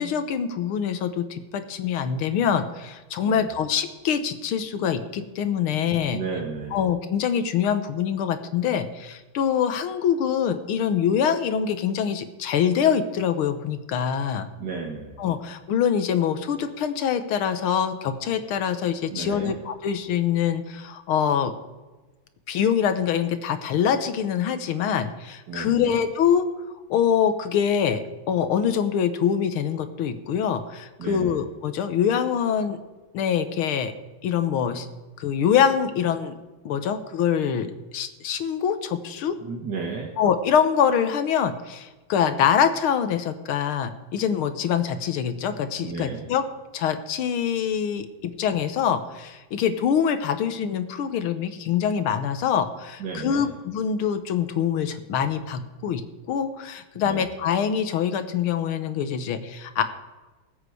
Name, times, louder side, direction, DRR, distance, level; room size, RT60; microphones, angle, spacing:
voice 1, 0.0-6.2 6.7-14.5 15.2-21.5 22.5-26.5 26.9-32.8 33.1-33.9 34.2-34.9 35.2-36.3 36.7-39.3 40.2-46.4 46.7-56.0 56.3-59.8, left 8 dB, 90° left, 10 dB, 1.9 m, -24 dB
voice 2, 3.2-3.6 6.1-6.8 14.6-15.4 19.1-19.5 25.5-26.0 31.0-31.4 39.4-40.1 45.8-46.2 53.0-53.5 57.0-57.2, right 4 dB, 55° right, -2 dB, 2.2 m, -33 dB
19.5 x 8.1 x 4.8 m, 1.2 s
omnidirectional pair, 2.3 m